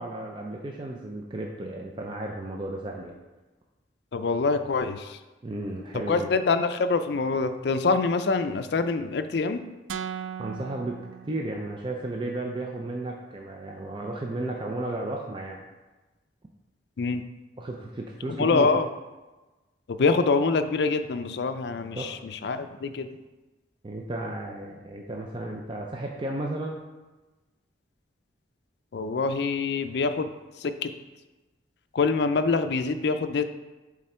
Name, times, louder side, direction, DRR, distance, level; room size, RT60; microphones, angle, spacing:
voice 1, 0.0-3.2 5.4-6.3 10.4-11.0 11.2-15.6 17.6-18.7 22.0-22.1 23.8-26.8, right 1 dB, 25° right, 0 dB, 0.5 m, -33 dB
voice 2, 4.1-5.2 6.1-9.6 17.0-17.2 18.4-18.9 19.9-23.1 28.9-30.3 30.6-30.9 31.9-33.4, left 4 dB, 60° left, 9 dB, 0.4 m, -25 dB
sound 1, 9.9-12.0, right 8 dB, 85° right, 0.3 m, -38 dB
7.6 x 3.7 x 4.3 m, 1.2 s
head